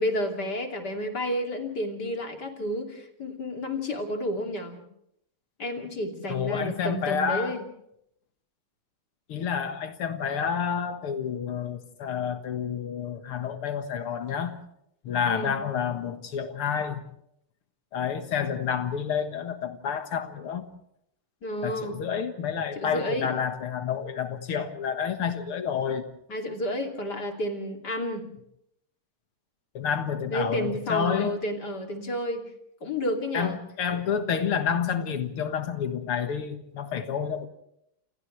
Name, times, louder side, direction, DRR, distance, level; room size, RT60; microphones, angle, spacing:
voice 1, 0.0-4.8 5.6-7.6 15.2-15.6 21.4-22.0 22.7-23.3 26.3-28.3 30.3-32.4 32.8-33.6 33.9-34.0, equal, 50° left, 3 dB, 3.4 m, -31 dB
voice 2, 6.3-7.6 9.3-14.6 15.0-17.0 17.9-20.7 21.6-26.1 29.7-31.3 33.3-33.5 33.8-37.5, left 7 dB, 85° left, 7 dB, 2.5 m, -29 dB
29.5 x 27.5 x 3.3 m, 0.75 s
omnidirectional pair, 2.3 m